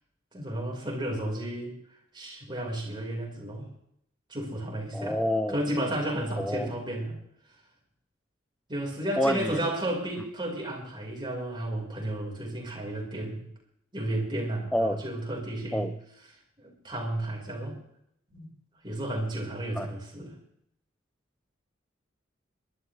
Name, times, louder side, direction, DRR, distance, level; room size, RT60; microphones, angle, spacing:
voice 1, 0.3-1.8 2.1-3.7 4.3-5.2 5.5-7.2 8.7-13.4 13.9-15.9 16.6-17.8 18.3-18.5 18.8-20.4, right 1 dB, 25° right, -2 dB, 4.7 m, -32 dB
voice 2, 4.9-5.6 6.4-6.7 9.2-9.6 14.7-15.0 15.7-15.9 19.8-19.9, left 1 dB, 5° left, 8 dB, 0.5 m, -27 dB
22.5 x 12.0 x 3.3 m, 0.73 s
head